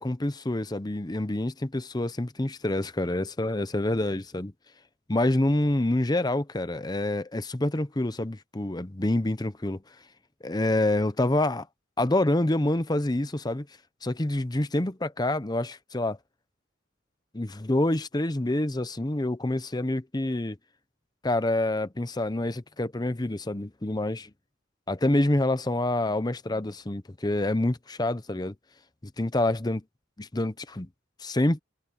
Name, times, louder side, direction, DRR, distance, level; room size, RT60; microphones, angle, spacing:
voice 1, 0.0-4.5 5.1-9.8 10.4-11.7 12.0-13.7 14.0-16.2 17.3-20.6 21.2-24.3 24.9-28.5 29.2-29.8 30.2-30.9 31.2-31.6, left 1 dB, 20° left, 0.8 m, -27 dB
head